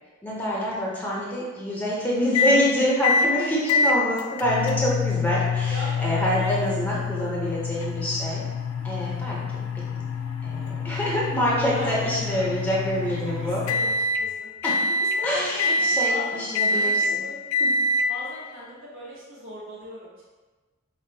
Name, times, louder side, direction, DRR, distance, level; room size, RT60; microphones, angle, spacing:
voice 1, 0.2-8.4 8.8-9.6 9.9-10.0 10.4-13.6 14.6-14.8 15.2-17.2 17.6-17.7, equal, 10° left, -5 dB, 0.6 m, -26 dB
sound 1, 2.3-2.6 3.0-3.3 3.7-14.2 14.6-15.2 15.6-16.1 16.5-17.1 17.5-18.1, left 3 dB, 70° left, 0.3 m, -25 dB
voice 2, 3.1-3.6 5.7-7.3 11.7-12.5 13.2-13.9 14.2-14.5 15.2-16.4 16.7-17.4 18.1-20.2, equal, 65° right, -8 dB, 1.2 m, -38 dB
5.3 x 2.2 x 2.7 m, 1.3 s
head